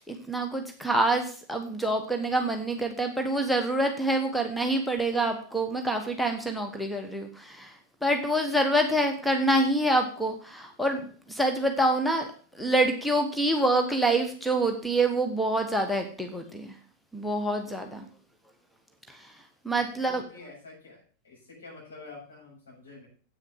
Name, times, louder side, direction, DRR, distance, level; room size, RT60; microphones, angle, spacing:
voice 1, 0.0-7.7 8.0-12.3 12.5-16.7 17.1-18.0 19.1-19.3 19.6-20.2, right 1 dB, ahead, 4 dB, 1.2 m, -26 dB
voice 2, 19.7-23.1, left 3 dB, 70° left, -4 dB, 6.9 m, -48 dB
8.6 x 6.4 x 7.1 m, 0.42 s
figure-of-eight pair, 90°, 0 cm